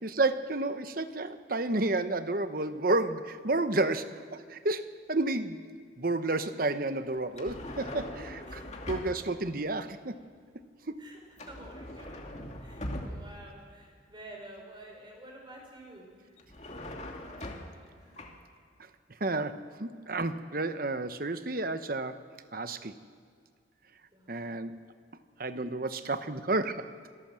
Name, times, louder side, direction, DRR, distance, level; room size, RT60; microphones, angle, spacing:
voice 1, 0.0-5.7 6.0-8.6 8.9-10.2 19.2-22.2 22.5-22.9 24.3-24.8 25.4-26.9, right 2 dB, 50° right, 10 dB, 1.0 m, -31 dB
sound 1, 7.3-9.4 11.4-13.5 16.4-17.9 18.1-18.4, left 1 dB, 35° left, 2.5 m, -41 dB
voice 2, 8.5-8.8 11.0-12.3 12.6-16.4 18.0-18.2 24.1-24.5, right 1 dB, 25° right, 1 dB, 5.0 m, -50 dB
27.0 x 17.5 x 7.6 m, 2.1 s
head